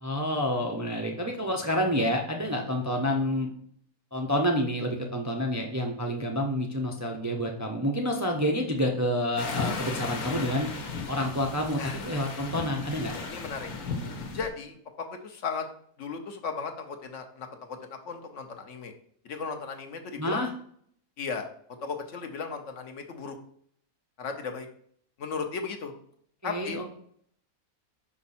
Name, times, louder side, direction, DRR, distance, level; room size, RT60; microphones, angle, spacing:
voice 1, 0.0-3.5 4.1-10.7 11.1-13.1 20.2-20.5 26.4-26.8, equal, 20° right, 2 dB, 0.4 m, -28 dB
sound 1, 9.4-14.5, left 4 dB, 85° left, 1.5 m, -35 dB
voice 2, 13.3-13.7 14.3-15.6 16.0-18.9 19.2-20.5 21.2-21.5 21.8-23.4 24.2-24.7 25.2-25.9 26.4-26.8, left 5 dB, 60° left, 5 dB, 1.1 m, -36 dB
5.7 x 5.3 x 4.2 m, 0.63 s
omnidirectional pair, 1.5 m